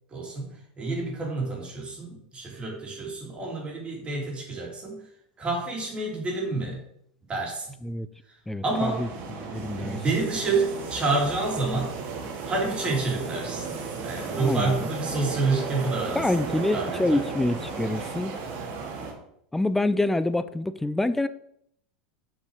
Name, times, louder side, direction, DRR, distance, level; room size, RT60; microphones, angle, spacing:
voice 1, 0.1-5.0 5.4-6.8 7.3-7.7 8.3-8.4 8.6-9.0 9.8-11.9 12.4-13.6 14.0-17.2, right 3 dB, 25° right, -1 dB, 3.0 m, -28 dB
voice 2, 8.5-9.1 9.5-10.0 14.4-14.8 16.1-18.3 19.5-21.3, left 2 dB, 5° left, 14 dB, 0.4 m, -26 dB
sound 1, 8.7-19.1, right 4 dB, 50° right, 2.2 m, -35 dB
6.7 x 5.3 x 5.0 m, 0.72 s
supercardioid pair, 120°, 5 cm